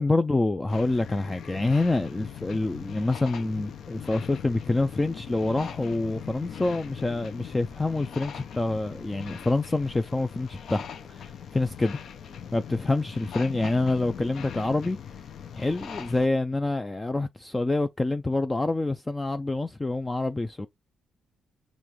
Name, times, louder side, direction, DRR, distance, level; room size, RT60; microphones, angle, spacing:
voice 1, 0.0-12.0 12.5-15.0 15.5-20.7, left 2 dB, 15° left, 0.3 m, -27 dB
sound 1, 0.7-16.3, left 8 dB, 60° left, 0.6 m, -40 dB
5.2 x 3.0 x 3.1 m
cardioid pair, 110°, 0 cm